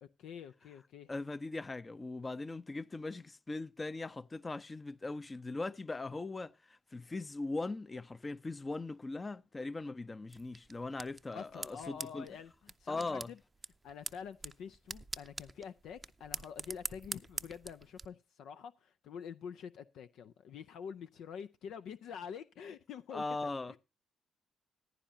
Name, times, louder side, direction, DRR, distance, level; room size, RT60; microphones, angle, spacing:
voice 1, 0.0-1.1 11.3-13.4 13.8-23.8, left 7 dB, 65° left, 0.5 m, -47 dB
voice 2, 1.1-12.3 12.9-13.3 23.1-23.8, left 3 dB, 25° left, 0.7 m, -40 dB
sound 1, 10.3-18.0, right 3 dB, 30° right, 0.6 m, -46 dB
15.0 x 10.5 x 2.7 m
hypercardioid pair, 45°, 0 cm